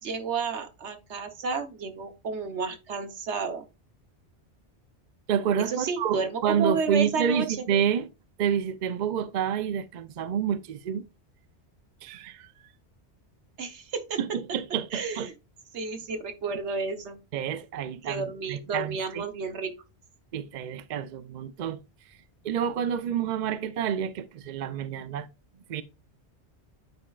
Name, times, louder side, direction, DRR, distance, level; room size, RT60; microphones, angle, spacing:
voice 1, 0.0-3.7 5.7-7.5 13.6-14.2 14.9-15.3 15.7-17.2 18.0-19.7, right 4 dB, 75° right, 1.2 m, -31 dB
voice 2, 5.3-8.1 8.4-11.0 12.0-12.5 14.2-15.3 17.3-19.2 20.3-21.8 22.4-25.3 25.7-25.8, right 8 dB, 55° right, 0.5 m, -28 dB
9.5 x 4.3 x 2.3 m
omnidirectional pair, 1.2 m